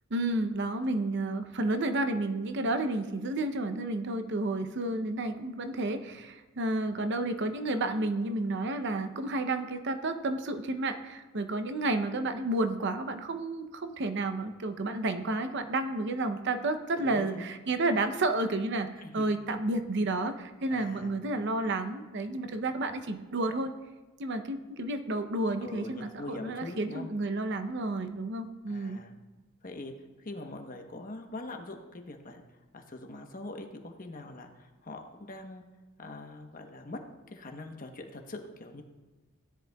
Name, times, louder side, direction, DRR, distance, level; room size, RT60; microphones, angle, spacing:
voice 1, 0.1-23.7 24.2-29.0, right 2 dB, 55° right, 8 dB, 0.7 m, -31 dB
voice 2, 17.0-17.5 19.0-19.3 20.7-21.2 25.6-27.1 28.7-29.1 29.6-29.9 30.2-32.4 32.7-35.6 36.0-37.0 37.3-38.8, left 2 dB, 40° left, 4 dB, 1.0 m, -43 dB
16.5 x 10.5 x 2.3 m, 1.2 s
head